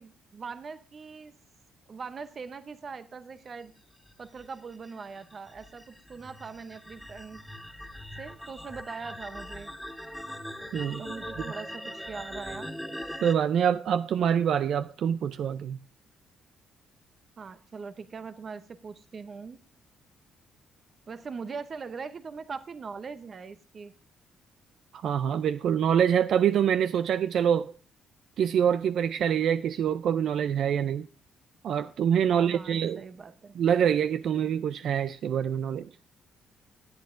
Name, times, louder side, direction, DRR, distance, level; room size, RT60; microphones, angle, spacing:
voice 1, 0.0-1.3 1.9-3.7 4.2-7.4 8.2-9.7 11.0-12.7 17.4-19.6 21.1-23.9 32.3-33.6, right 5 dB, 45° right, 0.7 m, -41 dB
sound 1, 4.1-13.3, equal, ahead, 1.9 m, -41 dB
voice 2, 13.2-15.8 24.9-27.7 28.4-31.1 31.6-33.0 33.6-35.9, right 8 dB, 70° right, 0.4 m, -25 dB
18.0 x 8.4 x 2.5 m
cardioid pair, 90°, 0 cm